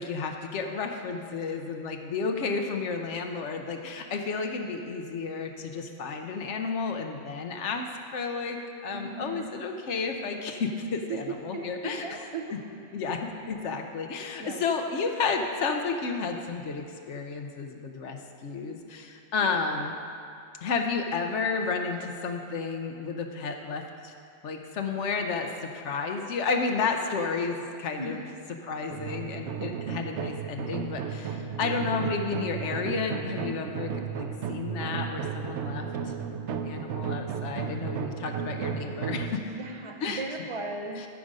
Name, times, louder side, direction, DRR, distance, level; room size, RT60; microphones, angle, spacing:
voice 1, 0.0-12.2 12.5-12.6 12.9-19.9 20.6-24.1 24.4-28.2 28.6-35.9 36.5-39.4 40.0-40.2 41.0-41.1, left 4 dB, 75° left, 4 dB, 1.0 m, -32 dB
voice 2, 8.9-9.5 10.9-11.2 11.5-12.6 14.4-14.6 19.4-19.6 28.0-28.2 39.5-41.0, right 3 dB, 40° right, 2 dB, 0.5 m, -37 dB
sound 1, 28.9-39.3, right 7 dB, 75° right, 0.9 m, -34 dB
13.0 x 5.0 x 5.3 m, 2.4 s
omnidirectional pair, 1.2 m